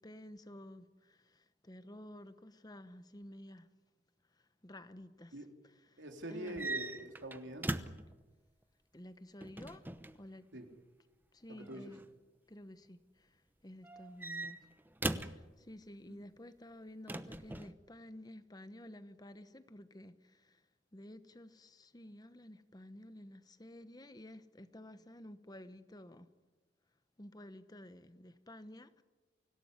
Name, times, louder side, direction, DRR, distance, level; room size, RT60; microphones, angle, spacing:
voice 1, 0.0-3.7 4.3-5.4 5.6-6.0 6.3-6.7 8.9-9.9 10.1-10.5 11.3-12.0 12.5-14.6 15.1-20.6 20.9-26.3 27.2-29.0, left 1 dB, 20° left, 1.0 m, -52 dB
voice 2, 6.0-7.8 10.5-10.7 11.5-11.9 16.1-16.2, right 1 dB, 85° right, 3.5 m, -45 dB
sound 1, 6.5-8.1 9.4-10.2 11.7-12.1 13.8-15.4 17.1-17.7, right 2 dB, 10° right, 0.9 m, -40 dB
25.0 x 17.0 x 9.6 m
head